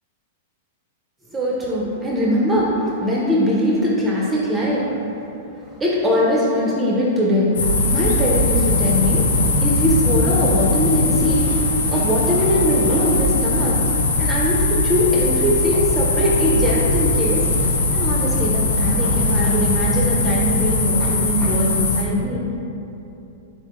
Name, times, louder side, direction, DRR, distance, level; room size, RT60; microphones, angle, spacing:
voice 1, 1.3-5.1 5.5-13.8 14.2-17.5 17.9-22.6, equal, 15° right, -4 dB, 0.4 m, -21 dB
sound 1, 7.6-22.0, left 2 dB, 75° left, 0.4 m, -20 dB
3.9 x 2.1 x 2.9 m, 2.8 s
hypercardioid pair, 115°, 0 cm